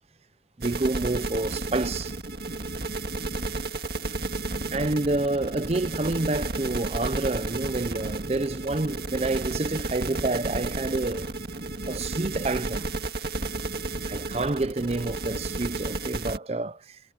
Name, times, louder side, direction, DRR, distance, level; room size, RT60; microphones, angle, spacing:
voice 1, 0.6-2.2 4.7-11.3 11.9-12.9 14.1-17.0, right 2 dB, 35° right, 0.6 m, -28 dB
sound 1, 0.6-16.4, right 2 dB, 60° right, 2.1 m, -32 dB
head